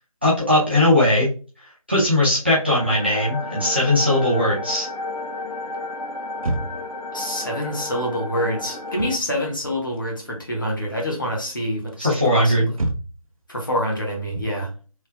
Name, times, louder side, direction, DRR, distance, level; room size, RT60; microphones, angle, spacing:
voice 1, 0.2-1.3 1.9-4.9 12.0-12.7, left 1 dB, 20° right, -7 dB, 0.6 m, -19 dB
sound 1, 2.7-9.2, left 2 dB, 80° left, 0.7 m, -32 dB
sound 2, 6.4-7.0 8.8-9.2 9.6-10.5 10.8-11.2 11.9-13.4, right 2 dB, 65° right, 0.6 m, -29 dB
voice 2, 7.1-12.7 13.5-14.7, equal, 35° left, -2 dB, 0.9 m, -26 dB
3.3 x 2.3 x 3.2 m, 0.35 s
figure-of-eight pair, 165°, 19 cm